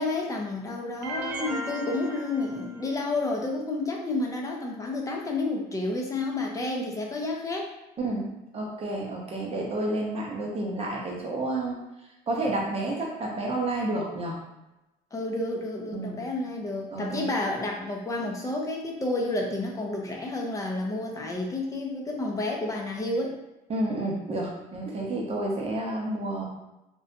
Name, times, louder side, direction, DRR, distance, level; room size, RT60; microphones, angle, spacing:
voice 1, 0.0-7.7 15.1-23.4, left 2 dB, 20° left, 0 dB, 0.5 m, -30 dB
sound 1, 1.0-3.1, right 2 dB, 85° right, 0.5 m, -36 dB
voice 2, 8.0-11.8 12.3-14.4 15.9-16.2 16.9-17.3 23.7-26.5, right 2 dB, 35° right, -2 dB, 0.7 m, -30 dB
2.6 x 2.2 x 2.6 m, 0.95 s
cardioid pair, 110°, 17 cm